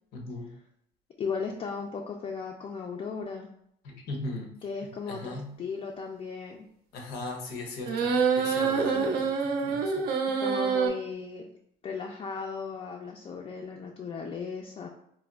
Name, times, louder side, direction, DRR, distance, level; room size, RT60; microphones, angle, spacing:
voice 1, 0.1-0.5 3.8-4.5 5.1-5.5 6.9-9.3 9.6-10.0, left 2 dB, 85° left, 1 dB, 0.8 m, -38 dB
voice 2, 1.2-3.5 4.6-6.7 8.9-9.2 10.4-11.4 11.8-14.9, left 5 dB, 35° left, 1 dB, 0.4 m, -36 dB
sound 1, 7.9-10.9, right 5 dB, 65° right, 0.5 m, -26 dB
4.1 x 2.2 x 2.2 m, 0.72 s
cardioid pair, 110°, 17 cm